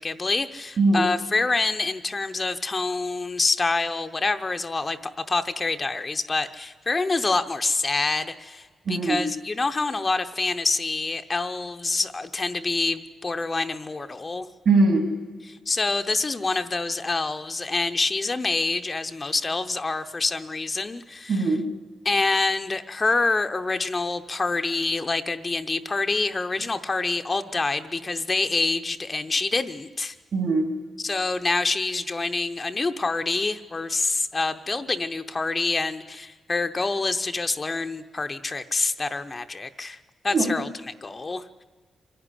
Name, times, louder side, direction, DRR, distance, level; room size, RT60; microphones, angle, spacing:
voice 1, 0.0-14.5 15.5-21.4 22.0-30.2 31.0-40.0 40.2-41.6, left 3 dB, 30° left, 8 dB, 0.7 m, -26 dB
voice 2, 0.8-1.1 8.8-9.2 14.6-15.1 21.3-21.7 30.3-30.7 40.3-40.5, right 3 dB, 60° right, 4 dB, 3.4 m, -21 dB
25.5 x 11.5 x 9.9 m, 1.5 s
cardioid pair, 115°, 0 cm